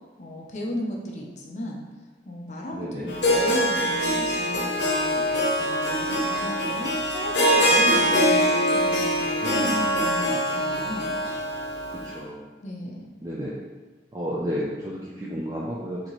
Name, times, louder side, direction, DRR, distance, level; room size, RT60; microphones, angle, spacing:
voice 1, 0.2-1.8 2.2-5.2 5.6-11.1 12.6-13.1, left 1 dB, 40° left, -1 dB, 0.5 m, -35 dB
voice 2, 2.7-3.1 9.4-9.7 11.9-12.4 13.2-13.5 14.1-16.0, equal, 20° right, -7 dB, 0.4 m, -32 dB
Harp, 3.1-12.1, equal, 85° left, 0.7 m, -23 dB
4.1 x 2.7 x 3.0 m, 1.3 s
head